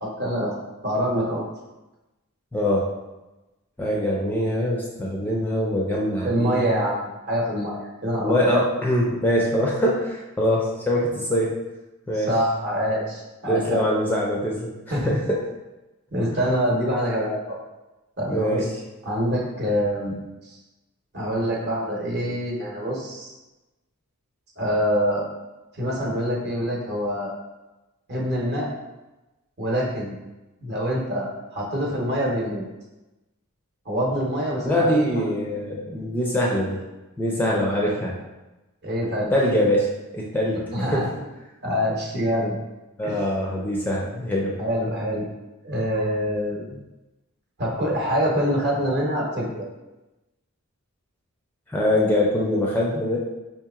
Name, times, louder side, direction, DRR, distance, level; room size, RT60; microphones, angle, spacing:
voice 1, 0.0-1.4 6.2-8.6 12.1-13.8 14.9-15.1 16.1-17.4 18.2-18.6 19.0-20.6 21.1-23.3 24.6-25.2 25.7-27.3 28.1-28.7 29.6-30.1 30.6-32.6 33.9-35.4 38.8-39.3 40.7-41.0 41.6-42.6 43.0-43.2 44.6-45.3 45.6-46.6 47.6-49.7, equal, 50° right, -2 dB, 0.9 m, -25 dB
voice 2, 2.5-2.9 3.8-6.8 8.2-11.5 12.1-12.3 13.5-15.4 18.3-18.7 34.6-36.8 37.2-38.2 39.3-40.6 40.9-41.1 43.0-44.6 51.7-53.2, equal, 10° left, -3 dB, 0.4 m, -23 dB
4.9 x 2.8 x 2.4 m, 1.1 s
head